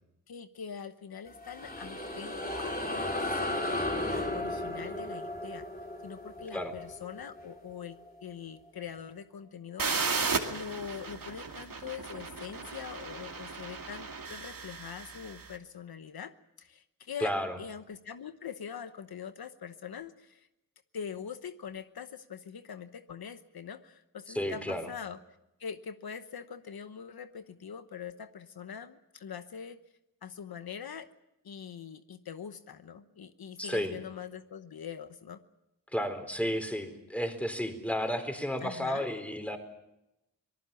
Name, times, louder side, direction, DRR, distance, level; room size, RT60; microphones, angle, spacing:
voice 1, 0.3-5.7 6.0-16.3 16.6-20.5 20.9-25.2 25.6-29.8 30.2-31.1 31.4-35.4 38.6-39.1, left 7 dB, 85° left, 10 dB, 1.0 m, -43 dB
sound 1, 1.3-8.1, left 1 dB, 25° left, 3.5 m, -35 dB
sound 2, 9.8-15.5, right 4 dB, 65° right, 2.6 m, -35 dB
voice 2, 17.2-17.6 24.3-24.9 33.6-34.0 35.9-39.6, equal, 5° left, 7 dB, 4.0 m, -32 dB
25.5 x 19.0 x 7.0 m, 0.88 s
cardioid pair, 65°, 36 cm